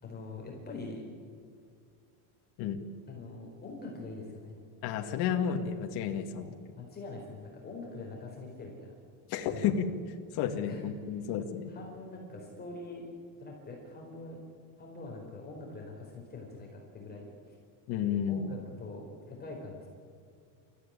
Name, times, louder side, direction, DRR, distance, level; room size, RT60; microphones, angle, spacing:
voice 1, 0.0-1.0 3.1-4.6 6.3-8.9 9.5-9.8 10.7-11.2 11.7-13.1 13.4-14.4 14.8-17.6 18.3-19.9, left 3 dB, 20° left, 0 dB, 4.3 m, -44 dB
voice 2, 4.8-6.5 9.3-9.9 10.3-11.7 17.9-18.5, left 8 dB, 50° left, 3 dB, 2.2 m, -31 dB
28.5 x 14.5 x 10.0 m, 2.2 s
cardioid pair, 160°, 48 cm